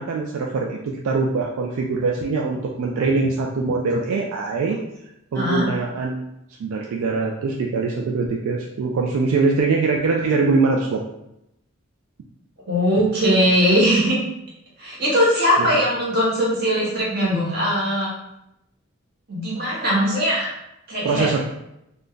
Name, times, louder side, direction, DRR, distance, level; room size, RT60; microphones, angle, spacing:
voice 1, 0.0-4.8 5.3-6.3 6.6-11.0 15.7-15.8 21.0-21.4, right 4 dB, 75° right, 0 dB, 0.3 m, -22 dB
voice 2, 5.3-5.7 12.7-14.2 14.8-18.1 19.3-20.5 20.9-21.3, equal, 45° right, -5 dB, 1.0 m, -20 dB
2.5 x 2.2 x 3.6 m, 0.84 s
head